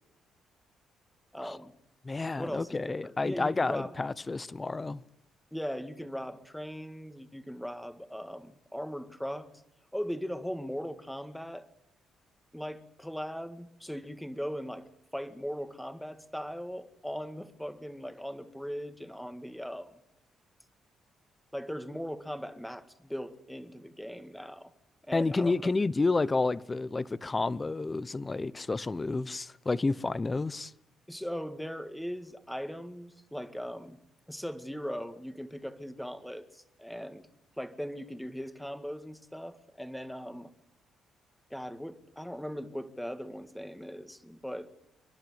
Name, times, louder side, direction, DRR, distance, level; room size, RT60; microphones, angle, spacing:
voice 1, 1.3-1.7 2.4-4.0 5.5-9.5 9.9-11.7 12.5-19.9 21.5-24.7 25.0-25.7 31.1-34.0 34.3-37.3 37.6-40.5 41.5-44.7, equal, 5° left, 2.0 m, -39 dB
voice 2, 2.0-5.0 25.1-30.7, left 3 dB, 25° left, 0.9 m, -30 dB
29.5 x 11.5 x 9.7 m
cardioid pair, 90°, 0 cm